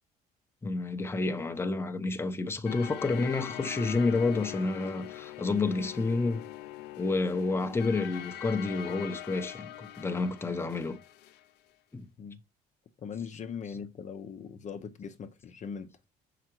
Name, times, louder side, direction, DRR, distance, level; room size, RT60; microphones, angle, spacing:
voice 1, 0.6-6.4 7.0-11.0 11.9-12.1, left 3 dB, 15° left, 0.9 m, -29 dB
sound 1, 2.7-11.4, left 13 dB, 90° left, 0.7 m, -42 dB
voice 2, 13.0-15.9, left 6 dB, 45° left, 0.9 m, -40 dB
6.5 x 5.0 x 4.6 m
cardioid pair, 110°, 17 cm